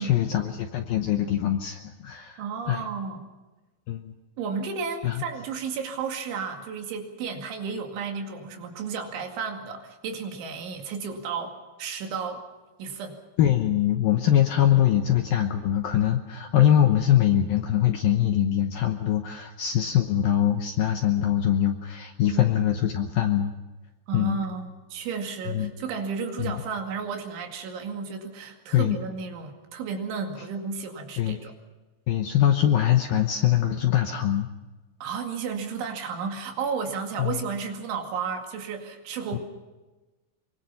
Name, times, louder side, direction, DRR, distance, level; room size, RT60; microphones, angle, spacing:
voice 1, 0.0-2.4 2.7-2.9 3.9-4.1 5.0-5.2 13.4-23.5 24.1-24.4 25.5-25.7 26.4-26.6 28.7-29.0 31.2-31.4 32.1-34.5 37.2-37.4 39.3-39.4, left 11 dB, 80° left, 5 dB, 2.1 m, -23 dB
voice 2, 2.4-3.3 4.4-12.4 12.8-13.2 22.3-22.4 24.1-31.5 35.0-39.4, right 5 dB, 75° right, 3 dB, 4.6 m, -33 dB
24.0 x 23.5 x 5.8 m, 1.2 s
omnidirectional pair, 5.7 m